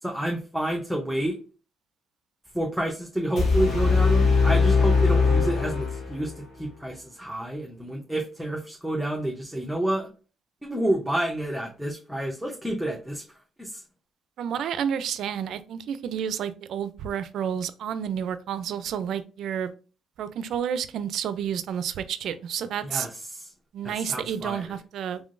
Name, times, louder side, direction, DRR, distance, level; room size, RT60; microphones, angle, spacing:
voice 1, 0.0-1.4 2.5-10.1 10.6-13.2 13.6-13.8 22.8-23.5 23.8-24.8, right 1 dB, ahead, 0.7 m, -29 dB
sound 1, 3.4-6.3, left 4 dB, 65° left, 1.5 m, -21 dB
voice 2, 14.4-19.7 20.2-23.1 23.7-25.2, right 8 dB, 75° right, 0.4 m, -30 dB
3.7 x 3.1 x 2.5 m
cardioid pair, 90°, 0 cm